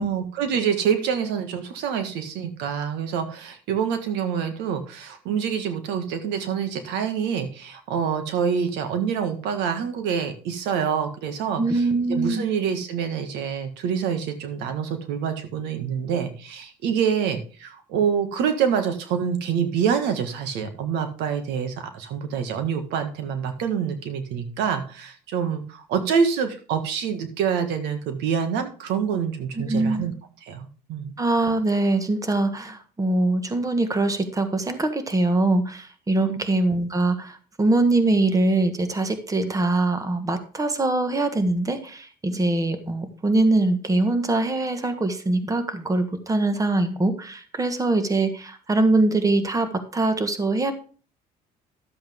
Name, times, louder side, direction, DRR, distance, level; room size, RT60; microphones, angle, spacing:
voice 1, 0.0-30.1 30.4-31.1 36.2-36.4, right 7 dB, 90° right, 8 dB, 1.5 m, -26 dB
voice 2, 11.6-12.5 29.6-30.1 31.2-50.7, right 2 dB, 20° right, 9 dB, 1.5 m, -23 dB
12.0 x 7.7 x 3.6 m, 0.39 s
cardioid pair, 110°, 17 cm